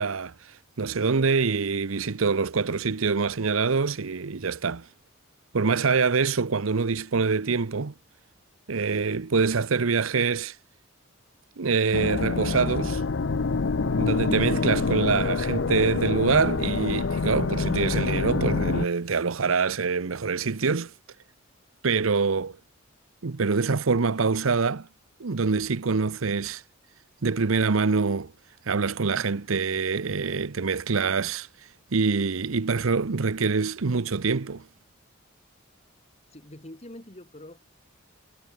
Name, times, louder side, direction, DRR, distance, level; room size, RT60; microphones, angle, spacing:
voice 1, 0.0-4.9 5.5-7.9 8.7-10.6 11.6-13.0 13.8-20.9 21.8-22.6 23.2-24.9 25.2-26.6 27.2-28.3 28.7-31.5 31.9-34.6, right 4 dB, 80° right, 0.8 m, -25 dB
sound 1, 11.9-18.9, left 4 dB, 60° left, 0.6 m, -26 dB
voice 2, 36.3-37.7, left 1 dB, 30° left, 2.8 m, -44 dB
head